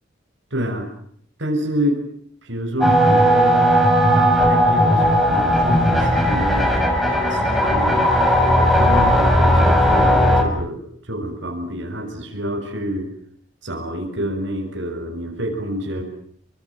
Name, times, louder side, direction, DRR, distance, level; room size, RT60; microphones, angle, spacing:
voice 1, 0.5-0.9 1.4-2.0 2.4-3.8 4.1-6.7 7.1-8.0 8.7-10.8 11.0-13.1 13.6-16.0, equal, 70° right, 2 dB, 7.3 m, -27 dB
sound 1, 2.8-10.4, equal, ahead, 5.6 m, -16 dB
29.5 x 25.5 x 7.7 m, 0.63 s
head